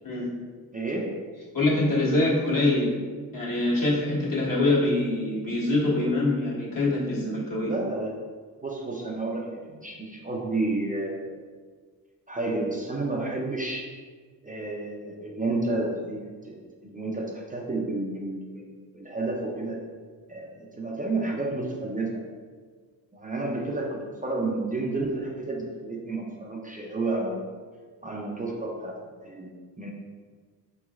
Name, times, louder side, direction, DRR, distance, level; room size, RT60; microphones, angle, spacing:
voice 1, 0.7-1.2 7.6-8.3 8.6-11.4 12.3-13.9 14.4-19.8 20.3-22.2 23.1-27.5 28.0-29.5 29.8-29.9, right 2 dB, 20° right, -1 dB, 0.5 m, -31 dB
voice 2, 1.5-2.9 3.3-7.7, left 2 dB, 55° left, -6 dB, 1.4 m, -24 dB
5.1 x 3.1 x 2.4 m, 1.5 s
cardioid pair, 85°, 39 cm